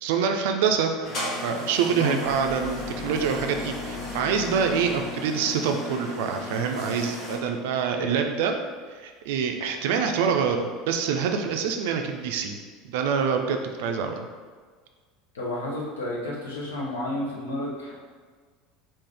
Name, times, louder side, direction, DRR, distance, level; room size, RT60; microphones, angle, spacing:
voice 1, 0.0-1.1 1.4-8.5 9.0-12.6 12.8-14.3, right 6 dB, 60° right, 5 dB, 0.3 m, -26 dB
sound 1, 1.0-7.4, left 2 dB, 40° left, 1.0 m, -35 dB
sound 2, 2.2-5.4, left 2 dB, 15° left, 0.8 m, -40 dB
voice 2, 15.3-17.9, left 1 dB, 75° left, -4 dB, 0.8 m, -31 dB
3.7 x 2.6 x 3.3 m, 1.5 s
figure-of-eight pair, 75°, 0 cm